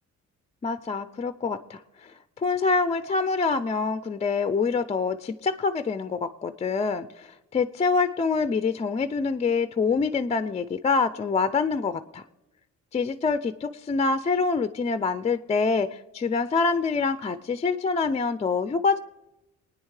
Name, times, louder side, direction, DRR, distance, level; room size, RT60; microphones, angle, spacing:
voice 1, 0.6-12.2 12.9-19.0, left 4 dB, 25° left, 11 dB, 0.3 m, -26 dB
22.5 x 9.6 x 3.2 m, 0.96 s
cardioid pair, 130°, 30 cm